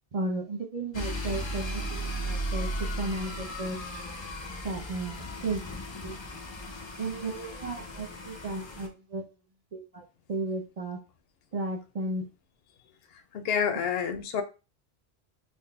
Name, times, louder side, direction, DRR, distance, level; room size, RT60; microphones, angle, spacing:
voice 1, 0.1-2.7 3.0-3.8 4.6-5.6 6.0-6.1 7.0-9.2 9.7-10.0 10.3-11.0 11.5-12.2, right 2 dB, 45° right, -1 dB, 0.6 m, -34 dB
sound 1, 0.9-8.9, equal, 35° left, 0.5 m, -36 dB
voice 2, 13.3-14.4, left 7 dB, 75° left, 8 dB, 0.8 m, -28 dB
3.9 x 2.1 x 3.2 m, 0.31 s
omnidirectional pair, 1.0 m